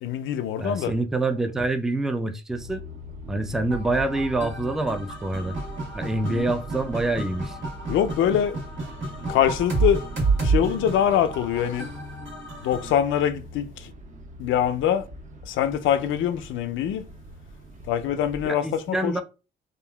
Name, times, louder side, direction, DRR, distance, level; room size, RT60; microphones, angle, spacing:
voice 1, 0.0-0.9 6.3-6.5 7.9-8.6 9.3-10.0 10.4-11.9 12.6-13.9 14.4-15.0 15.5-17.0 17.9-19.2, left 9 dB, 75° left, 0.4 m, -24 dB
voice 2, 0.6-2.8 3.3-5.6 5.9-7.6 18.4-19.2, right 2 dB, ahead, 0.3 m, -26 dB
sound 1, 2.5-18.5, equal, 40° right, 0.6 m, -43 dB
sound 2, 3.7-12.9, right 3 dB, 75° right, 1.6 m, -30 dB
3.5 x 2.3 x 2.3 m
cardioid pair, 90°, 20 cm